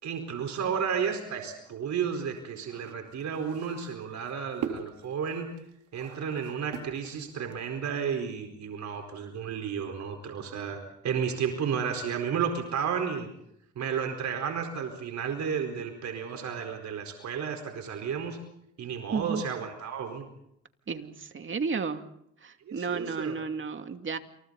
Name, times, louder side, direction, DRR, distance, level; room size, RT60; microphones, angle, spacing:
voice 1, 0.0-5.5 5.9-13.3 13.8-18.4 18.8-20.3 22.7-23.3, right 7 dB, 65° right, 4 dB, 4.5 m, -32 dB
sound 1, 1.6-7.8, right 8 dB, 85° right, 3.7 m, -41 dB
voice 2, 19.1-19.4 20.9-22.0 22.4-24.2, right 5 dB, 40° right, 6 dB, 2.5 m, -32 dB
29.0 x 28.5 x 4.1 m, 0.76 s
cardioid pair, 90°, 30 cm